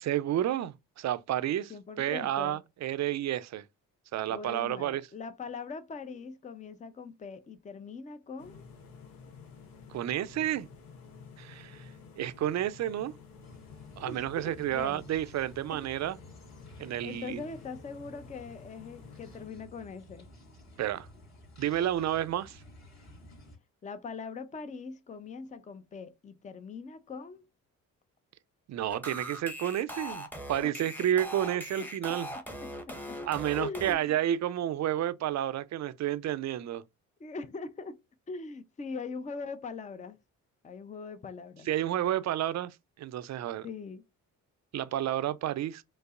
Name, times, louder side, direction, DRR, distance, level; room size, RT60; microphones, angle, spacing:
voice 1, 0.0-1.7 2.0-3.6 4.1-5.0 9.9-10.7 11.4-11.9 12.2-13.1 14.0-16.2 16.8-17.4 20.8-21.1 21.6-22.6 28.7-32.3 33.3-36.8 41.7-43.7 44.7-45.8, right 12 dB, 50° right, 0.5 m, -31 dB
voice 2, 1.7-2.6 4.3-8.6 14.1-15.0 15.7-15.8 17.0-20.3 23.8-27.4 30.6-30.7 32.1-32.2 32.6-33.2 33.5-34.1 37.2-38.0 38.3-40.2 40.6-41.7 43.6-44.0, left 4 dB, 20° left, 0.5 m, -41 dB
sound 1, 8.4-19.5, left 5 dB, 70° left, 0.8 m, -51 dB
sound 2, 13.4-23.6, left 1 dB, 45° left, 2.4 m, -54 dB
sound 3, 28.9-33.9, equal, 5° left, 1.0 m, -40 dB
5.2 x 2.0 x 2.4 m
supercardioid pair, 60°, 36 cm